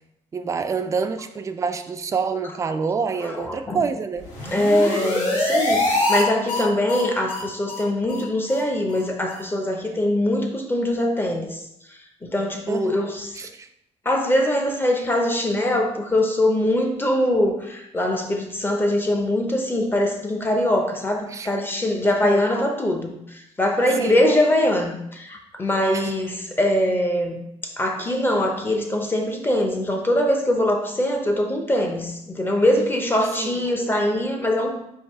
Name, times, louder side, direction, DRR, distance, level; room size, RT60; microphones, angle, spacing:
voice 1, 0.3-4.3 6.5-6.6 12.7-12.9 13.3-13.7 21.3-21.5 22.0-22.4 24.0-24.2 25.9-26.1 33.4-33.5 34.1-34.2, right 5 dB, 25° right, 8 dB, 0.3 m, -27 dB
voice 2, 3.2-3.8 4.5-11.6 12.2-13.4 14.0-27.4 27.6-34.8, left 1 dB, 15° left, 3 dB, 0.7 m, -22 dB
sound 1, 4.2-6.2 6.5-6.6 6.9-7.0 7.3-7.4 7.7-7.8 8.1-8.2 8.5-8.6 8.9-9.0 9.3-9.4, left 1 dB, 80° left, 1.4 m, -24 dB
4.5 x 2.6 x 4.5 m, 0.79 s
cardioid pair, 125°, 12 cm